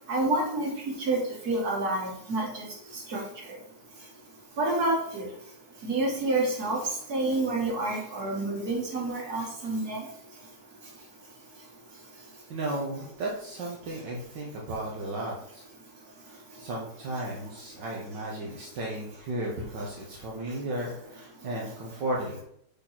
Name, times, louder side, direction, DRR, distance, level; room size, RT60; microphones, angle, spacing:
voice 1, 0.1-2.6 2.9-3.2 4.6-5.3 5.8-6.8 7.1-10.0, right 2 dB, 60° right, -1 dB, 2.4 m, -28 dB
voice 2, 12.5-15.6 16.2-22.4, right 1 dB, 75° right, -3 dB, 1.8 m, -34 dB
6.5 x 4.2 x 5.9 m, 0.70 s
omnidirectional pair, 1.9 m